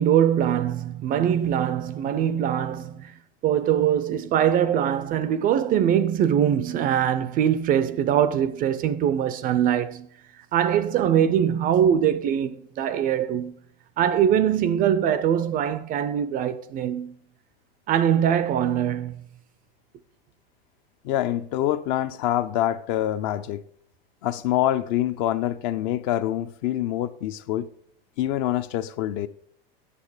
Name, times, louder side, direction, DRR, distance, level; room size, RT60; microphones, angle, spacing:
voice 1, 0.0-10.1 10.5-13.6 14.0-17.2 17.9-19.2, right 9 dB, 30° right, 0.4 m, -22 dB
voice 2, 21.0-23.6 24.2-27.7 28.2-29.3, left 12 dB, 50° left, 0.6 m, -25 dB
8.6 x 7.0 x 4.9 m
supercardioid pair, 130°, 31 cm